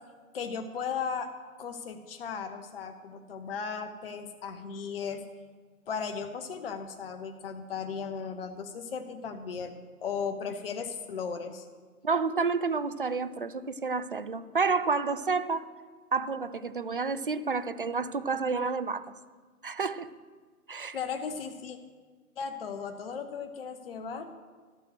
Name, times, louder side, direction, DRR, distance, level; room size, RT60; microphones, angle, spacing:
voice 1, 0.3-1.3 1.6-5.2 5.9-9.7 10.0-11.7 20.9-21.8 22.4-24.3, left 6 dB, 40° left, 8 dB, 0.8 m, -36 dB
voice 2, 12.0-15.7 16.1-19.0 19.6-20.1 20.7-21.0, right 4 dB, 40° right, 13 dB, 0.4 m, -30 dB
13.0 x 6.5 x 6.2 m, 1.5 s
figure-of-eight pair, 135°, 45 cm